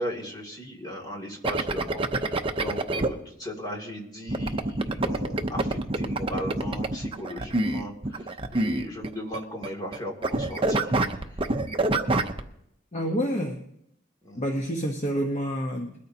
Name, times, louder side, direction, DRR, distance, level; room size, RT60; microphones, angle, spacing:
voice 1, 0.0-11.4 14.2-14.6, equal, 20° left, 0 dB, 2.5 m, -37 dB
sound 1, 1.4-3.1 4.3-9.4 9.6-10.0 10.2-12.4, right 2 dB, 30° right, 0.7 m, -26 dB
voice 2, 12.9-13.6 14.3-15.9, equal, 35° left, 1 dB, 1.1 m, -28 dB
21.5 x 13.5 x 2.8 m, 0.77 s
head